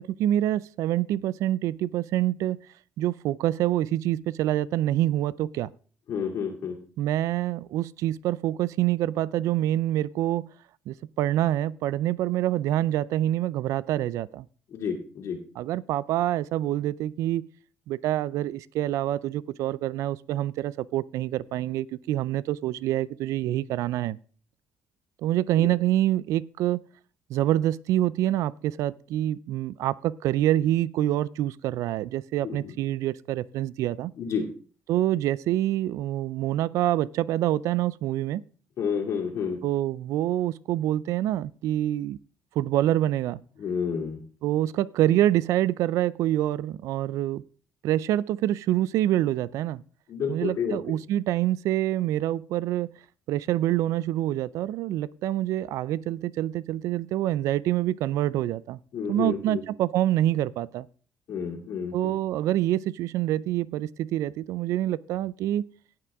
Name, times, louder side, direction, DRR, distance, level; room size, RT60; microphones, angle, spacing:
voice 1, 0.0-2.6 3.0-5.7 7.0-10.5 10.9-14.5 15.6-17.5 17.9-24.2 25.2-26.8 27.3-34.1 34.9-38.4 39.6-42.2 42.6-43.4 44.4-47.4 47.8-49.8 50.3-52.9 53.3-58.8 59.1-60.9 61.9-65.7, right 13 dB, 80° right, 21 dB, 0.4 m, -26 dB
voice 2, 6.1-6.8 14.7-15.4 25.6-25.7 32.4-32.7 34.2-34.5 38.8-39.6 43.6-44.2 50.1-50.8 58.9-59.6 61.3-62.2, left 6 dB, 70° left, -3 dB, 2.4 m, -30 dB
18.0 x 6.0 x 3.5 m, 0.41 s
cardioid pair, 90°, 5 cm